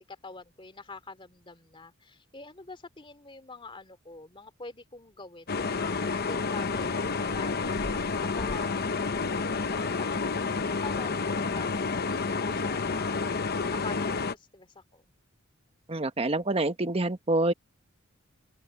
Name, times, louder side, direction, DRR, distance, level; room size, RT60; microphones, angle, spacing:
voice 1, 0.1-9.4 9.7-15.1, left 3 dB, 25° left, 2.8 m, -46 dB
sound 1, 5.5-14.3, left 4 dB, 50° left, 0.9 m, -29 dB
voice 2, 15.9-17.5, right 2 dB, 30° right, 1.2 m, -26 dB
open air
head